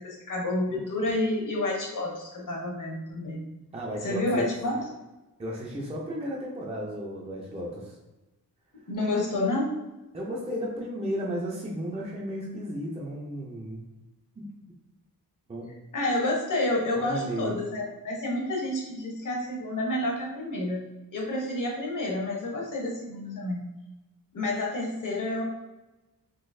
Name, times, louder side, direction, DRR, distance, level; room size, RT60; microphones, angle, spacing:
voice 1, 0.0-3.4 4.0-4.9 8.7-9.7 15.9-20.9 21.1-23.7 24.3-25.4, left 1 dB, 60° left, -2 dB, 1.0 m, -29 dB
voice 2, 3.7-4.5 5.4-8.0 10.1-13.8 14.4-14.5 15.5-15.7 17.0-17.5, equal, 20° right, -3 dB, 0.5 m, -34 dB
3.8 x 2.6 x 2.6 m, 1.1 s
wide cardioid pair, 165°, 35 cm